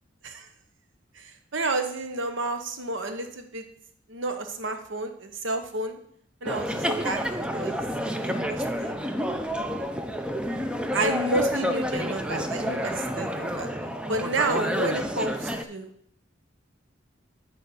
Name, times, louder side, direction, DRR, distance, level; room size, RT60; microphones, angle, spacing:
voice 1, 1.1-3.6 4.1-6.0 6.4-7.2 7.5-7.8 8.2-9.0 10.9-13.7 14.1-15.9, right 2 dB, 75° right, 6 dB, 0.9 m, -30 dB
sound 1, 6.4-15.6, equal, 5° right, 0.5 m, -29 dB
8.9 x 4.1 x 6.7 m, 0.68 s
head